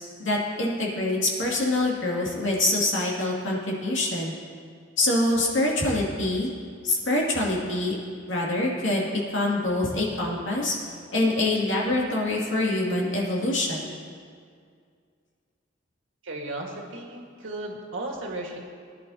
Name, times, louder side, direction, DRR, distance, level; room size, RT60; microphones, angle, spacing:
voice 1, 0.2-4.3 5.0-6.5 6.8-8.0 8.3-10.7 11.1-13.9, left 2 dB, 70° left, -3 dB, 2.6 m, -25 dB
voice 2, 16.2-18.6, right 2 dB, 75° right, -1 dB, 1.7 m, -35 dB
20.0 x 11.0 x 2.9 m, 2.2 s
head